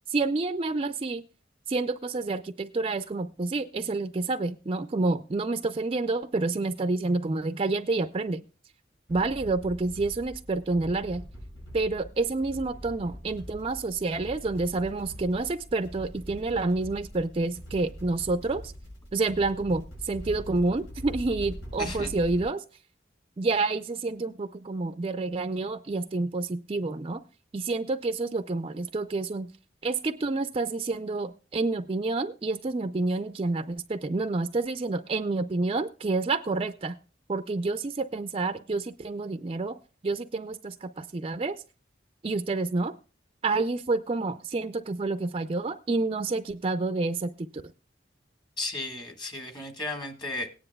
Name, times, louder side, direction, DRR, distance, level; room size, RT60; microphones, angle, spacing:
voice 1, 0.1-1.2 1.7-8.4 9.1-11.2 11.7-18.7 19.1-22.6 23.4-27.2 27.5-29.5 29.8-36.9 37.3-39.8 40.0-41.6 42.2-42.9 43.4-47.6, right 3 dB, 30° right, 10 dB, 0.4 m, -28 dB
sound 1, 9.1-22.4, equal, 85° left, 7.1 m, -43 dB
voice 2, 21.8-22.1 48.6-50.5, left 2 dB, 25° left, 5 dB, 1.6 m, -34 dB
18.0 x 9.9 x 2.2 m, 0.33 s
head